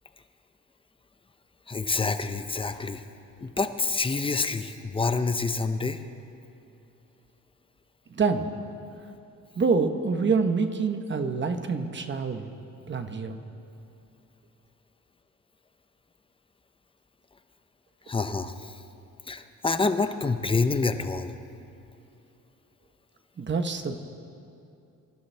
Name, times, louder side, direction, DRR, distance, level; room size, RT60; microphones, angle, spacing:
voice 1, 1.7-3.0 3.4-6.0 18.1-18.7 19.3-21.3, left 3 dB, 15° left, 9 dB, 0.6 m, -27 dB
voice 2, 8.1-8.5 9.5-12.5 12.9-13.4 23.4-24.0, right 4 dB, 35° right, 7 dB, 1.0 m, -26 dB
26.0 x 14.0 x 3.3 m, 2.8 s
wide cardioid pair, 145°, 32 cm